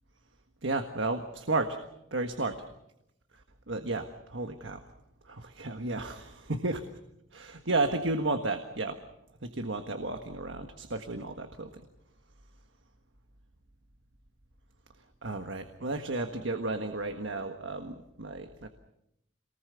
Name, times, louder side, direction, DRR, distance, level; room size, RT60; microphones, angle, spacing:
voice 1, 0.6-1.8 2.1-2.6 3.7-4.8 5.3-6.8 7.3-9.0 9.5-11.7 15.2-18.7, right 2 dB, 70° right, 6 dB, 1.6 m, -33 dB
27.5 x 20.0 x 7.0 m, 0.83 s
head